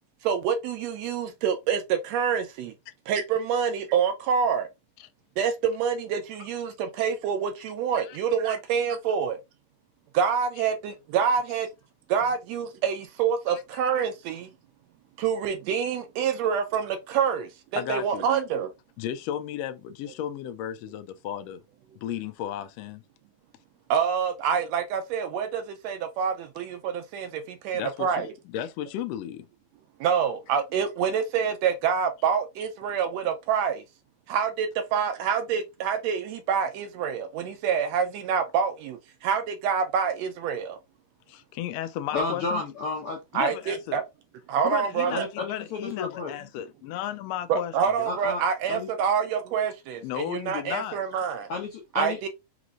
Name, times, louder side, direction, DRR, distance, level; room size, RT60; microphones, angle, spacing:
voice 1, 0.2-2.7 3.1-4.7 5.4-9.4 10.1-11.7 12.1-14.5 15.2-18.7 23.9-28.3 30.0-33.8 34.3-40.8 43.3-44.0 44.5-45.3 47.5-51.5 51.9-52.3, right 7 dB, 75° right, 1.7 m, -27 dB
voice 2, 17.7-18.3 19.0-21.6 22.0-23.0 27.7-29.5 41.3-42.6 43.3-44.0 44.6-48.1 50.0-51.0, left 11 dB, 85° left, 1.4 m, -34 dB
voice 3, 42.1-43.2 45.1-46.3 48.1-48.4 48.7-48.9 51.5-52.2, left 3 dB, 70° left, 1.4 m, -31 dB
5.0 x 3.0 x 2.4 m
omnidirectional pair, 3.5 m